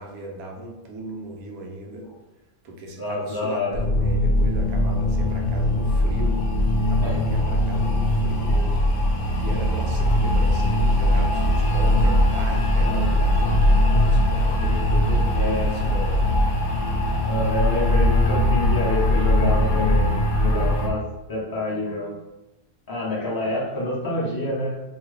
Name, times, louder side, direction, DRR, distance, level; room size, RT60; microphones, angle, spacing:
voice 1, 0.0-2.1 2.6-6.4 6.8-8.5 9.3-16.3, right 2 dB, 80° right, 1 dB, 1.1 m, -37 dB
voice 2, 3.0-3.8 7.0-7.2 8.5-8.7 15.3-15.8 17.2-20.1 20.4-22.2 22.9-24.8, left 1 dB, 30° left, -6 dB, 0.4 m, -27 dB
sound 1, 3.7-20.9, left 1 dB, 85° left, 1.1 m, -20 dB
2.9 x 2.4 x 3.1 m, 0.99 s
omnidirectional pair, 1.5 m